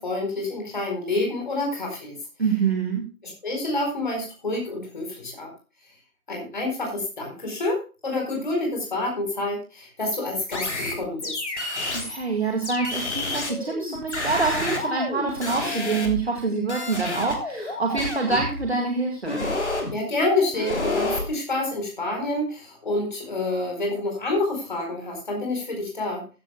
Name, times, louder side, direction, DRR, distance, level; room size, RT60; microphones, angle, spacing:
voice 1, 0.0-2.2 3.4-5.5 6.3-11.4 19.9-26.3, left 2 dB, 30° left, 1 dB, 4.3 m, -28 dB
voice 2, 2.4-3.0 11.9-19.5, right 4 dB, 40° right, 2 dB, 2.1 m, -26 dB
sound 1, 10.5-12.2 12.6-16.4 16.7-18.6 19.3-19.9 20.5-21.3, left 2 dB, 45° left, 3.3 m, -29 dB
14.5 x 13.5 x 2.2 m, 0.32 s
figure-of-eight pair, 165°, 46 cm